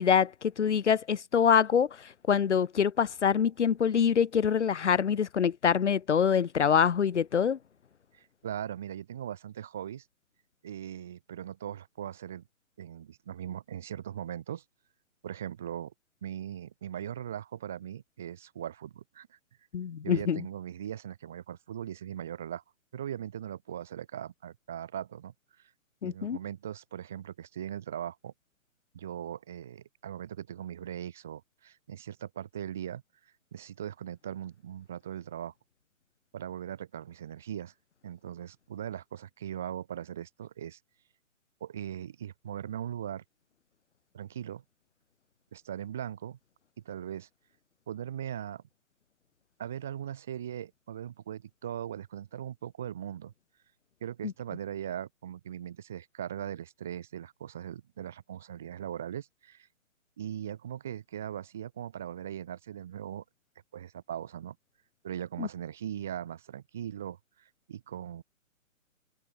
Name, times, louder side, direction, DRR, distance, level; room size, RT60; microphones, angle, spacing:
voice 1, 0.0-7.6 19.7-20.4 26.0-26.4 54.2-54.3 65.4-65.5, left 7 dB, 55° left, 2.6 m, -25 dB
voice 2, 8.1-10.0 10.6-12.4 12.8-14.6 15.2-15.9 16.2-19.4 20.0-22.6 22.9-25.3 26.0-28.3 28.9-33.0 33.5-35.5 36.3-37.7 38.0-40.8 41.6-43.2 44.1-44.6 45.5-46.4 46.8-47.3 47.9-48.6 49.6-53.3 54.0-59.7 60.2-63.2 63.7-64.6 65.0-68.2, right 10 dB, ahead, 0.6 m, -39 dB
hypercardioid pair, 170°, 41 cm